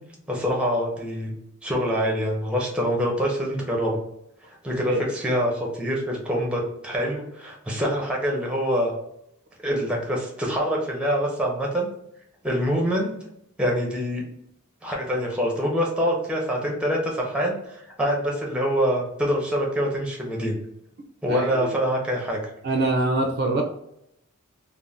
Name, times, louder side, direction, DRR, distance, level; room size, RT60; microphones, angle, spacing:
voice 1, 0.3-1.3 1.6-4.0 4.6-8.9 9.6-11.9 12.4-13.1 13.6-14.2 14.8-17.6 18.0-20.6 21.2-22.4, equal, 5° right, -1 dB, 0.6 m, -25 dB
voice 2, 21.3-21.8 22.6-23.6, right 2 dB, 50° right, 2 dB, 0.4 m, -24 dB
2.5 x 2.1 x 3.2 m, 0.76 s
head